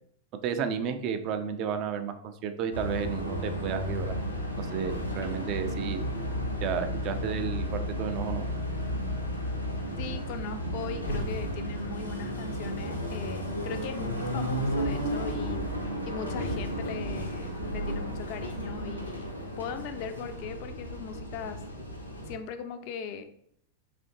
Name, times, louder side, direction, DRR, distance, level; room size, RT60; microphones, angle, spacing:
voice 1, 0.4-4.1 4.6-6.1 6.6-8.5, right 7 dB, 40° right, 8 dB, 0.4 m, -32 dB
sound 1, 2.7-22.4, equal, 85° left, 0.6 m, -33 dB
voice 2, 10.0-15.7 16.1-19.3 19.6-21.6 22.3-23.3, left 6 dB, 45° left, 8 dB, 0.3 m, -39 dB
4.2 x 2.7 x 2.7 m, 0.67 s
figure-of-eight pair, 90°, 0 cm